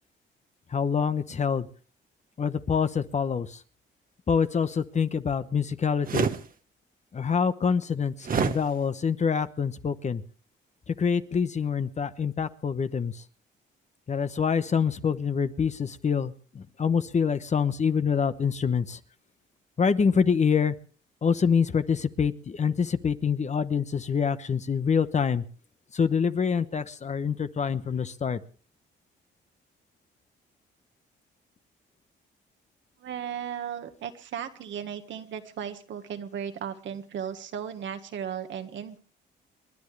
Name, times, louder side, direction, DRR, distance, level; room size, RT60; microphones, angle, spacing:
voice 1, 0.7-1.7 2.4-3.6 4.3-6.3 7.1-10.2 10.9-13.1 14.1-19.0 19.8-20.7 21.2-25.4 25.9-28.4, left 6 dB, 35° left, 12 dB, 1.0 m, -26 dB
sound 1, 6.0-6.4 8.2-8.6, right 6 dB, 45° right, 1.2 m, -25 dB
voice 2, 33.0-39.0, right 8 dB, 70° right, 7 dB, 1.7 m, -36 dB
28.5 x 10.5 x 3.3 m, 0.41 s
cardioid pair, 90°, 20 cm